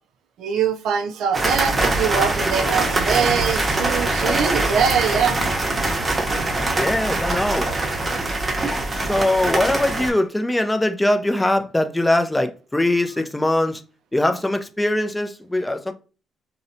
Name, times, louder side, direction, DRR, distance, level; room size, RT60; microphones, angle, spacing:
voice 1, 0.4-5.4, right 7 dB, 80° right, 0.3 m, -23 dB
sound 1, 1.3-10.1, right 2 dB, 30° right, 0.7 m, -23 dB
voice 2, 6.8-7.7 9.0-13.8 14.1-15.9, left 1 dB, 10° left, 0.3 m, -21 dB
2.7 x 2.1 x 2.6 m
cardioid pair, 90°, 0 cm